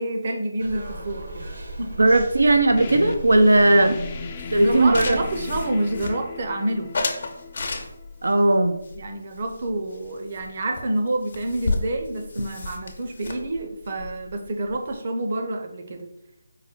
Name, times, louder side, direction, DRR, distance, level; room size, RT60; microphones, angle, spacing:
voice 1, 0.0-1.5 1.8-2.1 3.8-3.9 4.6-6.9 9.0-16.1, right 1 dB, 45° right, 4 dB, 0.7 m, -28 dB
sound 1, 0.6-5.6, right 1 dB, 70° right, 1.1 m, -38 dB
voice 2, 2.0-4.0 4.5-5.2 8.2-8.7, right 2 dB, 85° right, 7 dB, 0.4 m, -17 dB
sound 2, 2.8-8.2, left 5 dB, 25° left, 0.4 m, -37 dB
sound 3, 4.4-6.5 6.9-8.2 8.8-10.1 10.3-10.5 10.8-10.9 11.1-14.9, left 3 dB, 55° left, 0.7 m, -32 dB
4.7 x 2.2 x 4.4 m, 0.86 s
figure-of-eight pair, 165°, 0 cm